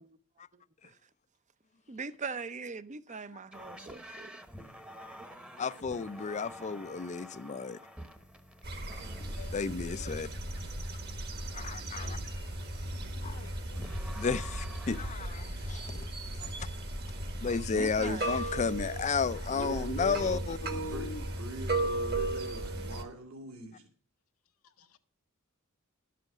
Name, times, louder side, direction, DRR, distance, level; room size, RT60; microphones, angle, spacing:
voice 1, 1.9-4.3 17.7-18.3, right 4 dB, 35° right, 0.6 m, -40 dB
sound 1, 3.5-9.8 13.7-15.1, equal, 5° right, 1.0 m, -48 dB
voice 2, 5.6-7.8 9.2-10.3 11.5-12.2 13.2-13.4 14.1-16.1 16.4-16.5 17.4-21.2, left 5 dB, 30° left, 0.4 m, -33 dB
sound 2, 8.6-23.0, right 1 dB, 50° right, 1.7 m, -36 dB
voice 3, 9.4-10.1 13.3-14.2 24.6-25.0, left 6 dB, 75° left, 0.8 m, -54 dB
voice 4, 11.3-12.3 19.5-20.4 20.7-23.9, right 2 dB, 65° right, 2.4 m, -43 dB
12.0 x 7.6 x 6.0 m
head